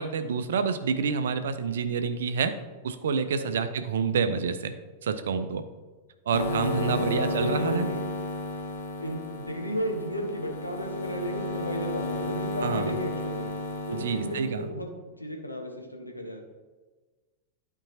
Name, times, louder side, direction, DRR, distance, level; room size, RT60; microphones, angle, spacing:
voice 1, 0.0-2.5 2.8-4.7 5.0-5.6 6.3-7.9 12.6-12.9 14.0-14.7, right 6 dB, 60° right, 10 dB, 0.5 m, -28 dB
sound 1, 6.3-14.6, left 2 dB, 55° left, 1.1 m, -33 dB
voice 2, 6.5-8.0 9.0-13.6 13.9-16.4, equal, 85° left, 2 dB, 1.0 m, -34 dB
11.5 x 4.6 x 2.8 m, 1.3 s
figure-of-eight pair, 90°, 0 cm